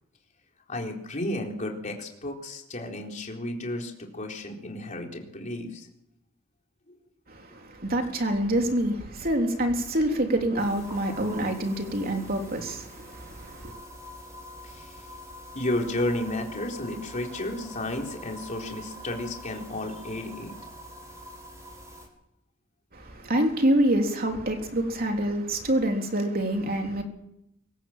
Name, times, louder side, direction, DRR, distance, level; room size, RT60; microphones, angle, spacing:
voice 1, 0.7-5.9 6.9-7.0 14.6-15.0 15.5-20.5, left 1 dB, 40° left, 4.1 m, -32 dB
voice 2, 7.3-13.7 22.9-27.0, right 1 dB, 50° right, 3.4 m, -26 dB
sound 1, 10.6-22.1, equal, 15° right, 6.7 m, -44 dB
24.5 x 15.5 x 7.5 m
head